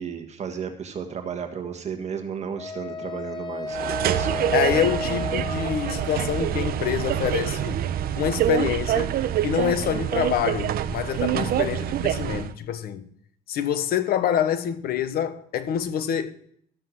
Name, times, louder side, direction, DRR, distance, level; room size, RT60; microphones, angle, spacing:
voice 1, 0.0-4.5, right 7 dB, 40° right, 1.5 m, -34 dB
Wind instrument woodwind instrument, 2.6-6.7, left 3 dB, 25° left, 1.6 m, -34 dB
sound 1, 3.7-12.5, right 11 dB, 65° right, 0.8 m, -26 dB
voice 2, 4.5-7.8 8.2-9.1 9.4-13.0 13.5-16.3, left 9 dB, 65° left, 1.2 m, -26 dB
13.0 x 7.6 x 6.3 m
cardioid pair, 110°, 17 cm